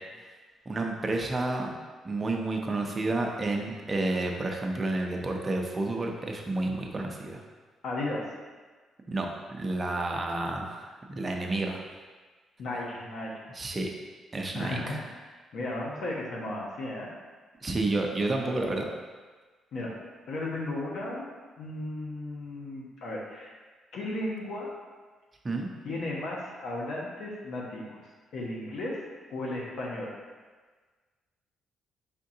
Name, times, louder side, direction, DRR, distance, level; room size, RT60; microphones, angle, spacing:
voice 1, 0.7-1.7 2.0-7.4 9.1-11.8 13.5-13.9 14.3-14.8 17.6-18.9 25.4-25.7, right 2 dB, 30° right, 1 dB, 0.6 m, -30 dB
voice 2, 7.8-8.3 12.6-13.4 14.5-15.0 15.5-17.1 19.7-19.9 20.3-21.3 21.6-23.5 23.9-24.7 25.8-29.0 29.3-30.1, left 2 dB, 70° left, -4 dB, 0.8 m, -35 dB
4.3 x 3.6 x 2.7 m, 1.4 s
cardioid pair, 90°, 0 cm